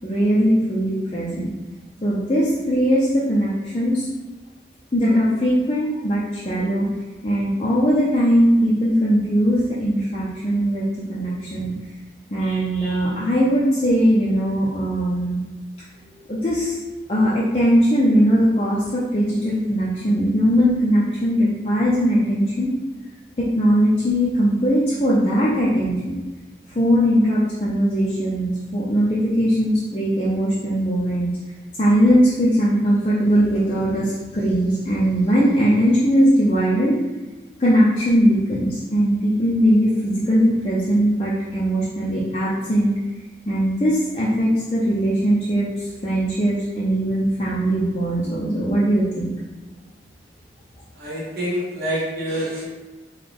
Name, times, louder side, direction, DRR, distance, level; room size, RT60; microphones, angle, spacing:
voice 1, 0.0-1.5 2.0-4.1 4.9-6.9 7.2-11.7 12.3-15.4 16.1-16.8 17.1-22.7 23.4-26.2 26.7-31.3 31.8-37.0 37.6-42.9 43.5-49.3, equal, 30° left, -7 dB, 0.5 m, -20 dB
voice 2, 51.0-52.6, equal, 55° right, -8 dB, 0.8 m, -26 dB
3.9 x 2.3 x 3.4 m, 1.2 s
head